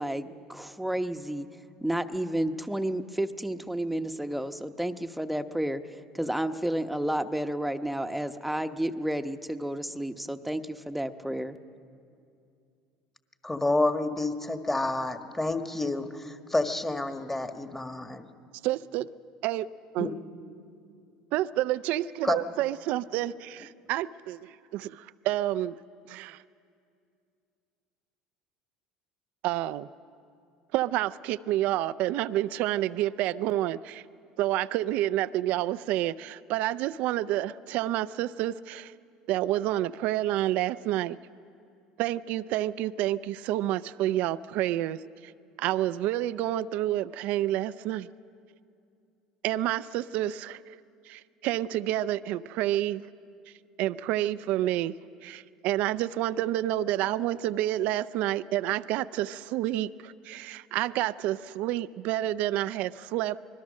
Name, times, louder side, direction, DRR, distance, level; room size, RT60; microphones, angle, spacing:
voice 1, 0.0-1.5 1.8-5.8 6.1-11.6, right 1 dB, 5° right, 8 dB, 1.0 m, -31 dB
voice 2, 13.4-18.2 20.0-20.1 22.2-22.4, left 2 dB, 15° left, 7 dB, 1.6 m, -29 dB
voice 3, 18.6-19.1 19.4-19.7 19.9-20.2 21.3-25.7 26.1-26.4 29.4-29.9 30.7-34.0 34.4-38.9 39.3-41.2 42.0-45.3 45.6-48.1 49.4-50.6 51.1-53.0 53.8-54.9 55.2-63.4, right 14 dB, 65° right, 15 dB, 0.5 m, -29 dB
25.5 x 20.5 x 6.4 m, 2.5 s
hypercardioid pair, 85°, 3 cm